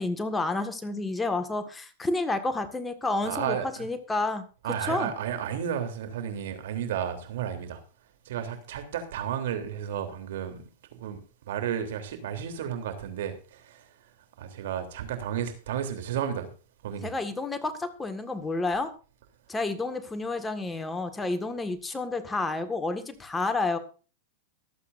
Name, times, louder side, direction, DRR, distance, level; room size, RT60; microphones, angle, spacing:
voice 1, 0.0-4.4 4.9-5.1 17.0-18.9 19.5-23.8, left 3 dB, 10° left, 1.7 m, -30 dB
voice 2, 3.2-3.8 4.6-7.8 8.2-10.6 10.9-11.2 11.5-13.9 14.4-16.5 16.8-17.1, right 9 dB, 70° right, 3.3 m, -32 dB
24.0 x 8.5 x 2.6 m
hypercardioid pair, 125°, 0 cm